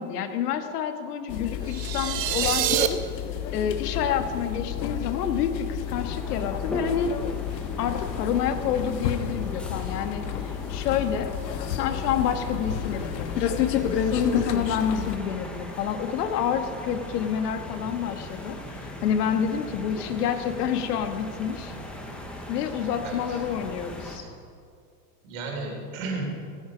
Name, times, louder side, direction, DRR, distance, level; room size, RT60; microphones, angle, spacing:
voice 1, 0.0-3.0 3.5-7.1 7.8-11.3 11.8-21.8 22.5-24.2, left 8 dB, 65° left, 8 dB, 1.5 m, -28 dB
sound 1, 1.3-15.2, left 9 dB, 85° left, 1.3 m, -31 dB
sound 2, 1.7-2.9, right 13 dB, 80° right, 1.2 m, -26 dB
sound 3, 5.8-24.2, left 1 dB, ahead, 0.5 m, -39 dB
voice 2, 23.0-23.4 24.0-24.3 25.2-26.2, right 3 dB, 50° right, 0 dB, 3.7 m, -34 dB
15.0 x 13.5 x 5.0 m, 2.2 s
supercardioid pair, 160°, 49 cm